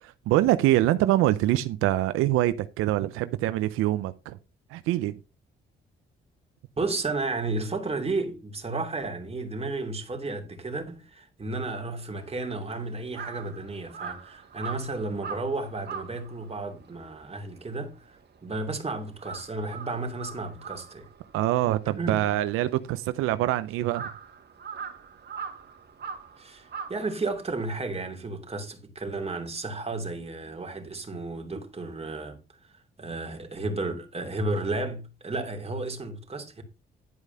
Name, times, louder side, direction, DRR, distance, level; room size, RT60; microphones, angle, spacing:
voice 1, 0.0-4.4 4.7-5.1 21.3-24.1, right 15 dB, 90° right, 0.6 m, -24 dB
voice 2, 6.8-21.1 22.0-22.3 26.4-32.4 33.0-36.6, right 3 dB, 30° right, 2.8 m, -33 dB
Crow, 12.2-18.7 19.0-27.7, right 6 dB, 50° right, 2.0 m, -42 dB
11.0 x 4.8 x 5.4 m
supercardioid pair, 65°, 21 cm